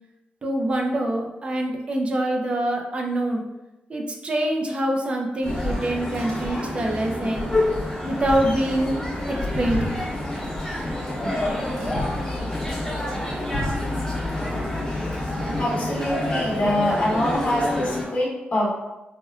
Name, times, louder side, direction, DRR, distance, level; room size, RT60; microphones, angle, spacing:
voice 1, 0.4-3.4 3.9-7.5 8.0-9.0 9.3-9.9 11.2-11.3 11.7-11.8 12.2-12.3 13.1-13.3, right 1 dB, 30° right, 1 dB, 0.4 m, -25 dB
sound 1, 5.4-18.0, left 1 dB, 10° left, 1.2 m, -28 dB
sound 2, 5.5-17.9, right 2 dB, 70° right, 0.7 m, -43 dB
sound 3, 8.2-15.6, left 2 dB, 80° left, 0.9 m, -34 dB
voice 2, 15.6-18.7, left 1 dB, 40° left, -5 dB, 0.9 m, -24 dB
4.2 x 2.2 x 2.3 m, 0.99 s
wide cardioid pair, 160°, 4 cm